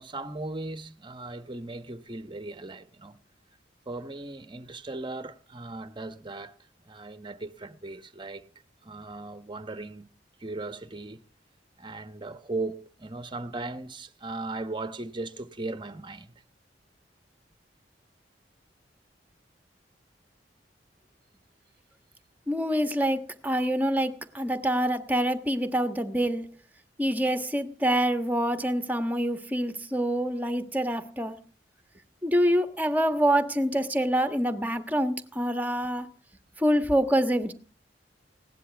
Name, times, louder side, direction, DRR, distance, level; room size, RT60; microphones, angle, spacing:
voice 1, 0.0-3.2 3.9-6.6 6.8-8.5 8.8-10.1 10.4-11.2 11.8-16.3, right 2 dB, 25° right, 1.1 m, -37 dB
voice 2, 22.5-26.5 27.0-31.4 32.2-36.1 36.6-37.5, equal, 10° right, 1.4 m, -26 dB
20.0 x 17.5 x 3.5 m
head